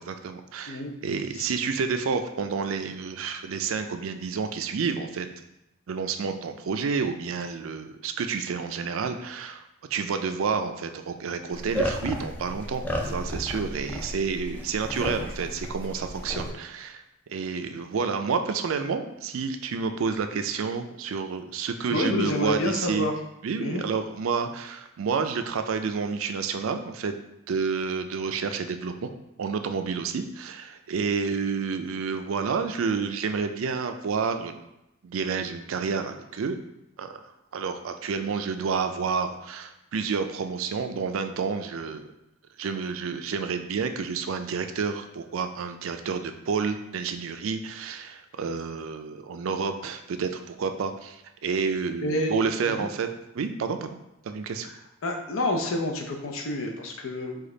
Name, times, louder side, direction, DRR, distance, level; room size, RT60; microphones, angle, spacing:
voice 1, 0.0-5.3 5.9-9.6 9.9-17.0 17.3-23.1 23.4-27.1 27.5-29.1 29.4-34.7 35.0-36.6 37.0-42.1 42.6-53.1 53.3-54.0 54.2-54.7, right 5 dB, 75° right, 7 dB, 0.4 m, -29 dB
sound 1, 11.5-16.5, equal, 10° left, 0.3 m, -33 dB
voice 2, 21.9-23.1 23.6-23.8 52.0-52.4 52.7-52.9 55.0-57.4, left 1 dB, 75° left, 3 dB, 0.6 m, -28 dB
5.0 x 2.4 x 3.8 m, 0.86 s
head